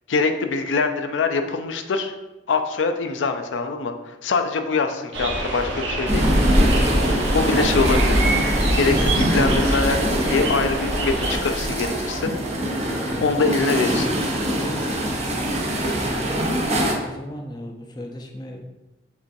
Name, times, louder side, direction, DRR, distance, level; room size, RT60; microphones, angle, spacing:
voice 1, 0.1-2.1 2.5-6.2 7.3-8.3 8.8-10.0 10.3-12.3 13.2-14.1, left 4 dB, 85° left, 7 dB, 0.4 m, -23 dB
sound 1, 5.1-11.4, right 2 dB, 75° right, 0.8 m, -28 dB
sound 2, 6.1-16.9, equal, 35° right, 0.7 m, -22 dB
sound 3, 10.5-16.5, equal, 5° left, 0.8 m, -40 dB
voice 2, 15.8-16.3 17.0-18.7, left 1 dB, 20° left, 2 dB, 0.5 m, -37 dB
6.8 x 2.5 x 2.6 m, 1.0 s
head